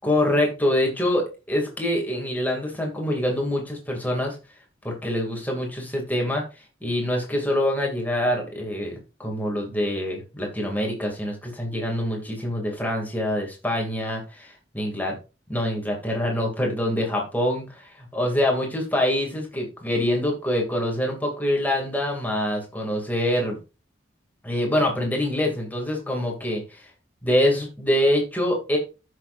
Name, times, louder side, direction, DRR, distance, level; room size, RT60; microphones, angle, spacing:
voice 1, 0.0-4.4 4.8-6.4 6.8-15.2 15.5-23.6 24.4-26.9 27.2-28.8, left 1 dB, 10° left, 0 dB, 2.4 m, -25 dB
14.5 x 6.5 x 2.6 m, 0.31 s
head